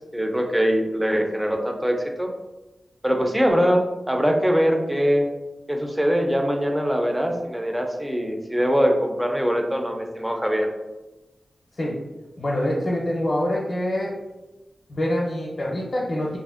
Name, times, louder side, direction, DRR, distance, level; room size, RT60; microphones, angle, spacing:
voice 1, 0.1-2.3 3.0-5.3 5.7-10.7, equal, 10° right, 3 dB, 0.4 m, -22 dB
voice 2, 12.4-14.2 14.9-16.4, left 1 dB, 50° left, -4 dB, 0.5 m, -25 dB
2.9 x 2.5 x 2.4 m, 1.1 s
wide cardioid pair, 80°, 0 cm